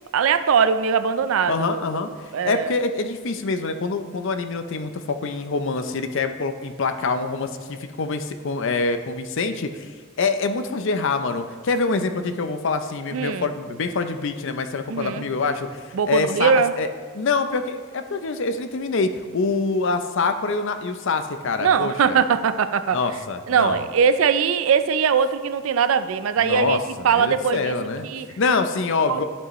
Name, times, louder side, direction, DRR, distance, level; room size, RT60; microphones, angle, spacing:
voice 1, 0.1-2.7 13.1-13.5 14.9-15.3 15.9-16.7 21.6-23.0 23.5-27.7 28.0-28.3 29.1-29.2, right 6 dB, 75° right, 11 dB, 0.4 m, -21 dB
voice 2, 1.5-2.1 2.4-16.9 17.1-22.2 22.9-23.9 26.4-28.1 28.4-29.2, left 4 dB, 60° left, 9 dB, 0.5 m, -25 dB
11.0 x 5.5 x 3.1 m, 1.5 s
head